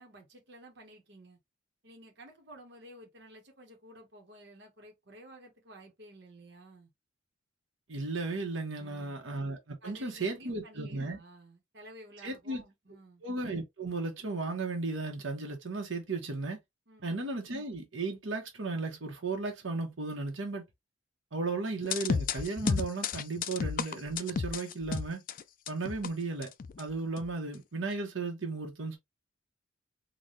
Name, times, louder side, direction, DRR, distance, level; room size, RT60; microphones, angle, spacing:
voice 1, 0.0-1.4 1.8-6.9 8.8-9.2 9.8-13.2 16.9-17.1, right 1 dB, 60° right, 1.1 m, -53 dB
voice 2, 7.9-11.2 12.2-12.6 13.2-16.6 17.0-20.6 21.3-25.2 25.7-26.5 26.8-29.0, right 3 dB, 80° right, 1.1 m, -35 dB
sound 1, 21.8-26.1 26.4-26.8 27.2-27.3, left 5 dB, 45° left, 0.3 m, -32 dB
4.0 x 2.4 x 3.1 m
head